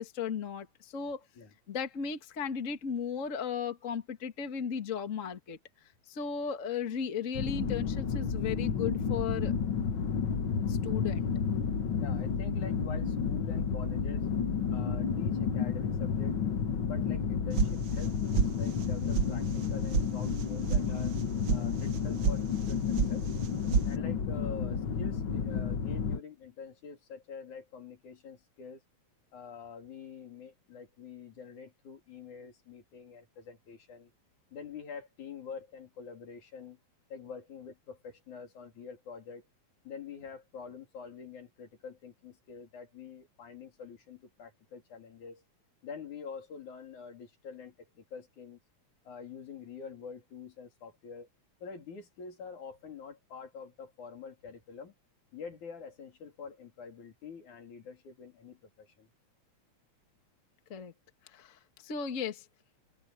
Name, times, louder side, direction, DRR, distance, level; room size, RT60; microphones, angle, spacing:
voice 1, 0.0-1.2 1.7-5.6 6.1-9.5 10.7-11.3 60.7-60.9 61.3-62.4, left 7 dB, 30° left, 1.7 m, -35 dB
sound 1, 7.4-26.2, left 6 dB, 50° left, 1.9 m, -31 dB
voice 2, 12.0-14.3 14.7-16.4 16.8-21.2 21.5-23.3 23.8-28.8 29.3-34.1 34.5-36.8 37.1-39.4 39.8-45.4 45.8-48.6 49.0-51.3 51.6-54.9 55.3-59.1, left 6 dB, 80° left, 4.7 m, -46 dB
sound 2, 17.6-18.1 18.3-18.9 19.1-19.3 19.6-20.1 20.3-20.8 21.1-21.6 21.9-22.4 22.6-23.1 23.4-23.9, right 7 dB, 70° right, 1.0 m, -28 dB
open air
omnidirectional pair, 3.4 m